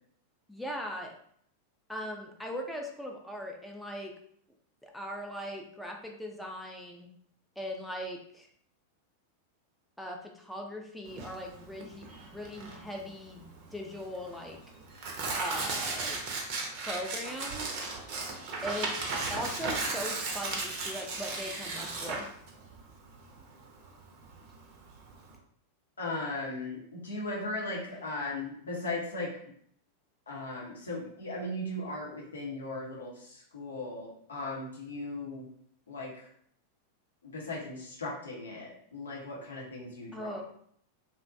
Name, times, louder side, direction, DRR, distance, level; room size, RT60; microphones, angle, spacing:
voice 1, 0.5-1.1 1.9-4.1 4.8-7.1 7.6-8.5 10.0-14.6 15.4-16.2 16.7-17.8 18.6-22.3 40.1-40.4, equal, 5° left, 1 dB, 0.4 m, -39 dB
Tearing, 11.1-25.3, right 3 dB, 45° right, 0.6 m, -36 dB
voice 2, 26.0-29.4 30.3-35.5 35.9-36.3 37.2-40.4, left 2 dB, 70° left, -3 dB, 0.8 m, -37 dB
2.5 x 2.1 x 2.5 m, 0.64 s
figure-of-eight pair, 90°, 0 cm